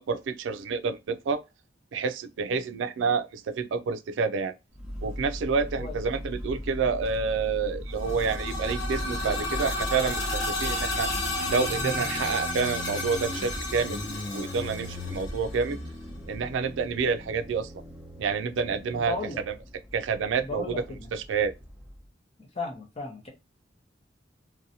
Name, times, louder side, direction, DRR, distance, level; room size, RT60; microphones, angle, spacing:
voice 1, 0.0-1.4 1.9-4.5 5.0-11.1 11.5-15.8 16.3-17.7 18.2-19.2 19.9-20.8 21.1-21.5, right 5 dB, 85° right, 0.3 m, -28 dB
Motorcycle, 4.8-22.0, left 1 dB, 5° right, 0.7 m, -38 dB
sound 1, 7.9-15.7, left 2 dB, 70° left, 1.1 m, -32 dB
voice 2, 18.7-19.4 20.4-21.1 22.4-23.3, left 3 dB, 35° left, 0.7 m, -36 dB
2.7 x 2.2 x 2.7 m
head